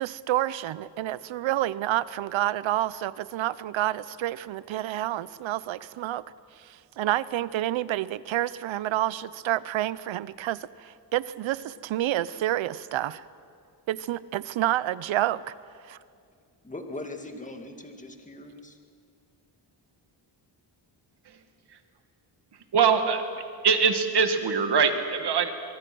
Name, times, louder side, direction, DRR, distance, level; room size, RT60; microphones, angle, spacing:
voice 1, 0.0-6.2 6.6-13.2 13.9-15.5 15.8-16.0, right 14 dB, 90° right, 18 dB, 0.7 m, -29 dB
voice 2, 16.6-18.8, left 2 dB, 15° left, 4 dB, 2.1 m, -40 dB
voice 3, 22.7-23.2 23.6-25.5, right 6 dB, 60° right, 7 dB, 2.0 m, -22 dB
23.5 x 23.0 x 6.2 m, 2.3 s
cardioid pair, 105°, 45 cm